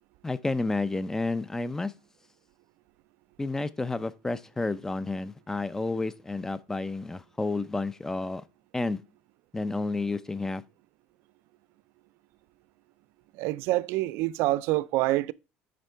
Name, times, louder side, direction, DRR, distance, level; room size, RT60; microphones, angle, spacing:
voice 1, 0.2-1.9 3.4-8.4 8.7-9.0 9.5-10.6, left 3 dB, 10° left, 0.5 m, -30 dB
voice 2, 13.3-15.3, right 18 dB, 75° right, 0.4 m, -26 dB
10.5 x 3.6 x 4.4 m
cardioid pair, 110°, 4 cm